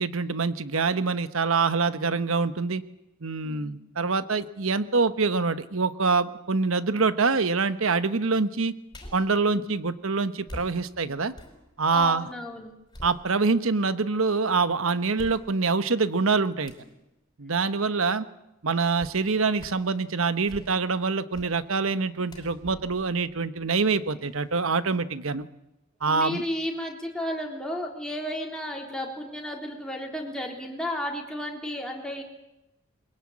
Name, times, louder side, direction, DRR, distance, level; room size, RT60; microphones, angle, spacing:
voice 1, 0.0-2.8 3.2-8.7 9.1-11.3 11.8-12.3 13.0-16.7 17.4-18.3 18.6-25.5 26.0-26.4, right 4 dB, 70° right, 12 dB, 1.1 m, -25 dB
voice 2, 3.4-3.8 9.5-9.7 11.9-12.7 26.0-32.2, equal, 5° left, 0 dB, 3.6 m, -33 dB
sound 1, 8.9-9.4 10.5-12.2 12.6-13.7 14.2-14.3 15.1-15.8 16.6-17.0 19.0-19.2 19.6-19.9 20.3-20.9 21.3-21.6 22.3-24.0 24.3-24.4, equal, 20° left, 5.0 m, -45 dB
22.5 x 21.5 x 8.7 m, 0.92 s
head